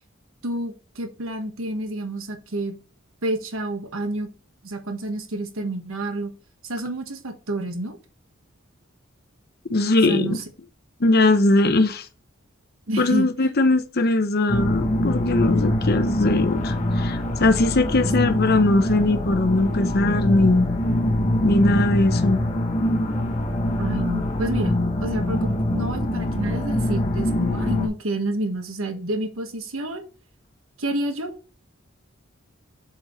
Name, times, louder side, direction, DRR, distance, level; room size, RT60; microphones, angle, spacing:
voice 1, 0.4-2.8 3.2-4.3 4.6-6.3 6.6-8.0 10.1-10.4 12.9-13.3 23.8-30.0 30.8-31.3, right 1 dB, 85° right, 1.3 m, -29 dB
voice 2, 9.7-10.4 11.0-12.0 13.0-20.7 21.4-22.4, left 2 dB, 50° left, 0.8 m, -20 dB
sound 1, 14.5-27.9, left 1 dB, 35° left, 1.2 m, -24 dB
7.9 x 4.3 x 3.1 m
head